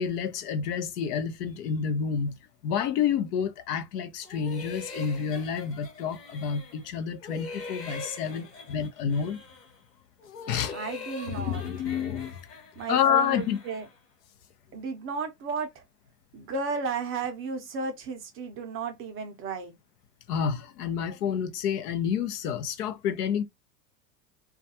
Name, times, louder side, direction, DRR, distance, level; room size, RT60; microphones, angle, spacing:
voice 1, 0.0-2.4 2.6-9.4 10.5-10.8 11.3-12.4 12.9-13.6 20.3-23.4, left 7 dB, 70° left, 0.7 m, -29 dB
sound 1, 4.2-6.9 7.2-9.8 10.2-14.0, left 3 dB, 25° left, 1.0 m, -43 dB
voice 2, 10.7-11.7 12.8-13.9 14.7-15.8 16.3-19.7, right 4 dB, 25° right, 0.5 m, -34 dB
2.3 x 2.3 x 2.7 m
hypercardioid pair, 110°, 49 cm